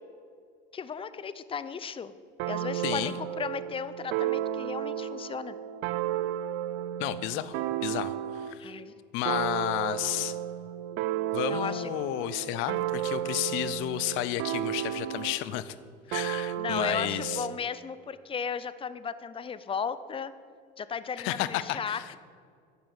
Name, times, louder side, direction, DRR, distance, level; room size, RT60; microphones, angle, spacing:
voice 1, 0.7-2.1 2.4-5.6 8.6-8.9 11.5-11.9 16.3-20.3 20.8-22.2, left 6 dB, 25° left, 14 dB, 0.6 m, -35 dB
sound 1, 2.4-8.6 9.2-15.5 16.1-17.6, right 12 dB, 70° right, 0.5 m, -33 dB
voice 2, 2.8-3.1 7.0-8.7 9.1-10.4 11.3-15.8 16.1-17.5 21.2-22.1, left 14 dB, 70° left, 15 dB, 0.7 m, -32 dB
10.5 x 6.9 x 7.9 m, 2.1 s
supercardioid pair, 90°, 21 cm